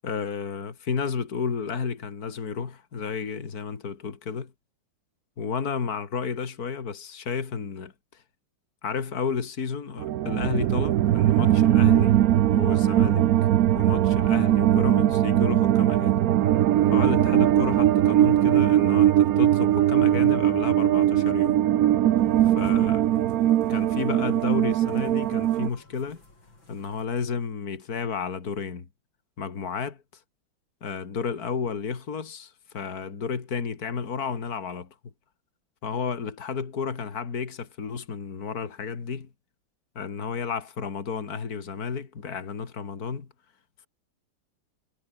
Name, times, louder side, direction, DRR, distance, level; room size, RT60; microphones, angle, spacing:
voice 1, 0.0-4.5 5.4-8.2 8.8-12.2 12.5-13.3 13.7-16.2 16.9-21.6 22.4-23.0 23.7-26.2 26.7-28.9 29.4-30.0 30.8-35.1 35.8-39.3 39.9-43.3, left 5 dB, 45° left, 2.8 m, -32 dB
sound 1, 10.0-25.7, right 12 dB, 65° right, 0.9 m, -20 dB
sound 2, 22.2-27.1, left 2 dB, 70° left, 7.8 m, -55 dB
omnidirectional pair, 2.2 m